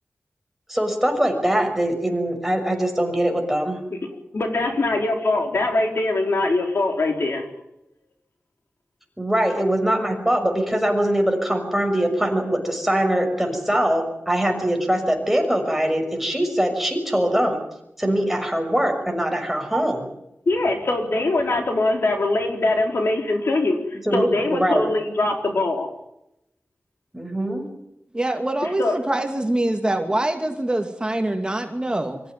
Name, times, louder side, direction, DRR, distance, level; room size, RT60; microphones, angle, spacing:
voice 1, 0.7-3.8 9.2-17.6 18.0-20.1 23.9-24.9 27.1-27.7, right 1 dB, 5° right, 3 dB, 6.1 m, -22 dB
voice 2, 4.3-7.5 20.5-25.9 28.8-28.9, left 2 dB, 75° left, 3 dB, 4.4 m, -22 dB
voice 3, 28.1-32.2, right 1 dB, 20° right, 5 dB, 2.4 m, -24 dB
24.5 x 15.0 x 9.4 m, 0.82 s
wide cardioid pair, 90°, 4 cm